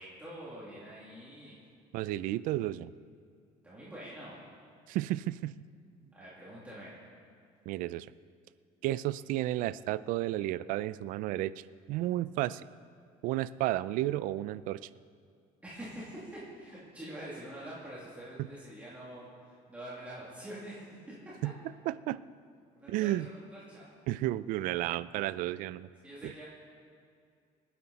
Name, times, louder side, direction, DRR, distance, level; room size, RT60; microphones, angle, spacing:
voice 1, 0.0-1.6 3.6-4.4 6.1-6.9 15.6-21.3 22.7-23.9 26.0-26.4, right 1 dB, 10° right, -8 dB, 2.6 m, -46 dB
voice 2, 1.9-2.9 4.9-5.5 7.7-8.1 8.8-11.6 11.9-12.6 13.2-14.9 18.4-18.5 21.4-21.5 21.9-22.2 22.9-23.3 24.1-25.9 26.2-26.3, right 15 dB, 65° right, 17 dB, 0.5 m, -32 dB
26.5 x 10.0 x 4.2 m, 2.3 s
cardioid pair, 170°, 15 cm